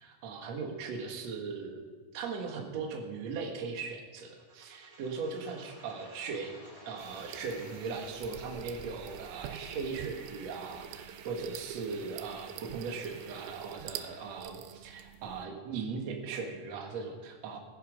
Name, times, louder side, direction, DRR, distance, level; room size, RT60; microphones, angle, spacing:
voice 1, 0.0-1.8 2.1-6.6 6.9-17.6, right 4 dB, 65° right, 2 dB, 1.7 m, -39 dB
sound 1, 4.3-10.1, right 2 dB, 30° right, 2.6 m, -59 dB
sound 2, 5.4-14.4, left 1 dB, 80° left, 6.5 m, -57 dB
sound 3, 7.0-15.5, right 10 dB, 90° right, 3.3 m, -45 dB
15.5 x 13.0 x 5.1 m, 1.4 s
omnidirectional pair, 5.6 m